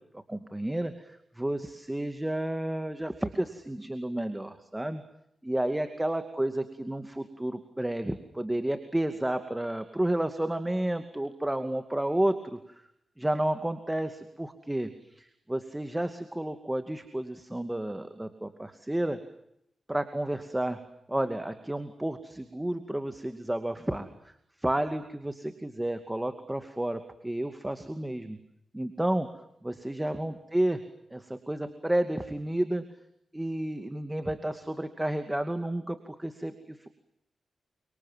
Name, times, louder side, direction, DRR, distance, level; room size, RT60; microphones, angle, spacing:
voice 1, 0.1-5.0 5.4-12.6 13.2-19.2 19.9-20.8 21.1-24.3 24.6-28.4 28.7-29.3 29.6-30.8 31.1-32.8 33.3-36.9, right 1 dB, 10° right, 8 dB, 2.4 m, -31 dB
29.5 x 26.0 x 7.5 m, 0.77 s
cardioid pair, 80°, 0 cm